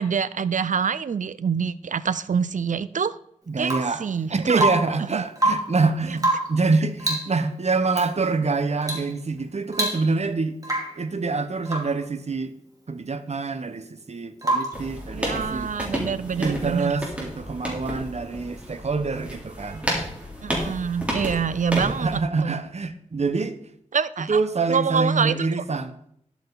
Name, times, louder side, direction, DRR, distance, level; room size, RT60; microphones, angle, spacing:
voice 1, 0.0-3.2 3.5-4.6 5.1-5.2 15.1-17.0 20.4-22.1 22.4-22.6 23.9-24.4 24.7-25.3, right 6 dB, 80° right, 17 dB, 0.5 m, -26 dB
voice 2, 3.5-4.0 4.3-12.5 12.9-15.7 16.3-20.1 21.8-23.6 24.2-26.0, right 4 dB, 60° right, 10 dB, 0.9 m, -26 dB
Rain / Water tap faucet / Drip, 3.6-4.0 4.5-5.0 5.3-5.8 6.2-6.6 7.0-7.4 7.9-8.1 8.8-9.1 9.4-9.5 9.7-10.3 10.6-11.0 11.7-12.0 14.4-14.9 16.8-16.9, right 1 dB, 25° right, 2.9 m, -26 dB
sound 1, 14.7-22.2, equal, 10° right, 3.4 m, -31 dB
11.0 x 8.1 x 3.9 m, 0.70 s
wide cardioid pair, 70°, 13 cm